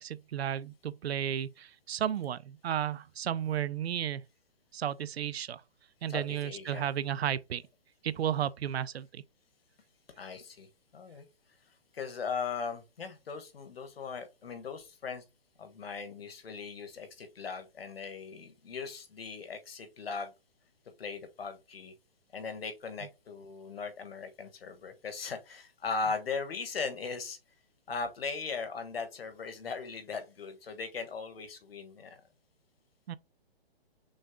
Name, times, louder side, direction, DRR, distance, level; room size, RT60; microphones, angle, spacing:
voice 1, 0.0-4.2 4.7-5.6 6.0-7.6 8.0-9.2 33.1-33.2, right 10 dB, 85° right, 0.6 m, -33 dB
voice 2, 6.1-6.9 10.2-11.2 11.9-15.2 15.6-20.3 21.0-21.9 22.3-27.4 27.9-32.2, left 5 dB, 70° left, 1.5 m, -38 dB
6.3 x 2.3 x 3.6 m
hypercardioid pair, 180°, 31 cm